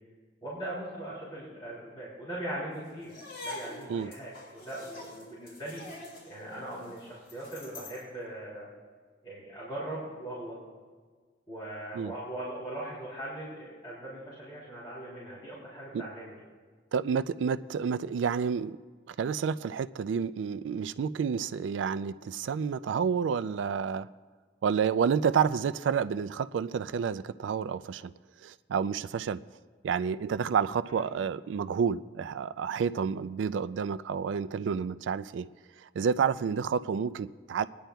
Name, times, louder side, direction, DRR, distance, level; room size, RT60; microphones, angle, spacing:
voice 1, 0.4-5.8 6.3-8.7 9.2-10.6 11.5-16.4 30.9-31.0, right 1 dB, 25° left, -10 dB, 3.2 m, -40 dB
sound 1, 3.0-8.1, left 2 dB, 75° left, 3.4 m, -45 dB
voice 2, 16.9-18.8 19.1-24.1 24.6-28.1 28.4-29.4 29.8-35.5 36.0-37.7, right 6 dB, 80° right, 15 dB, 0.3 m, -29 dB
27.0 x 10.0 x 2.3 m, 1.5 s
head